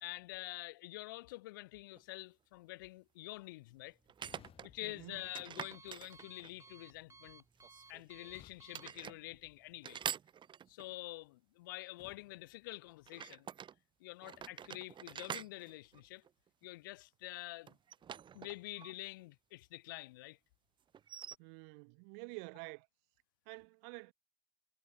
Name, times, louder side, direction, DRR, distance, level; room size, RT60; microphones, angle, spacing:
voice 1, 0.0-4.0 4.6-7.4 7.9-10.0 10.7-13.5 14.0-16.2 16.6-17.8 18.3-20.4, left 20 dB, 85° left, 1.2 m, -47 dB
sound 1, 2.0-2.1 4.1-4.7 5.4-6.7 7.6-8.3 8.7-9.2 9.8-10.9 13.1-13.8 14.2-16.6 17.7-18.9 19.2-19.3 20.9-21.4, right 8 dB, 50° right, 0.9 m, -46 dB
Alarm, 3.7-10.1, right 3 dB, 25° right, 7.3 m, -62 dB
sound 2, 4.2-6.2 8.3-10.0 12.0-13.6, left 11 dB, 60° left, 6.3 m, -65 dB
voice 2, 4.8-5.2 21.4-22.9 23.4-24.1, right 40 dB or more, 80° right, 3.1 m, -49 dB
hypercardioid pair, 55°, 11 cm